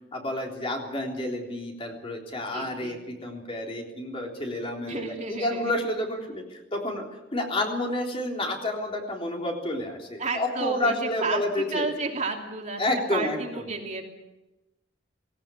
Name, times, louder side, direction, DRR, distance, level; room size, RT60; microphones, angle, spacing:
voice 1, 0.1-7.1 7.3-11.9 12.8-13.6, left 1 dB, 30° left, 0 dB, 3.6 m, -30 dB
voice 2, 2.5-3.0 4.9-5.7 10.2-11.4 11.7-12.8 13.1-14.1, right 3 dB, 40° right, 1 dB, 3.0 m, -32 dB
18.5 x 18.0 x 8.5 m, 0.99 s
head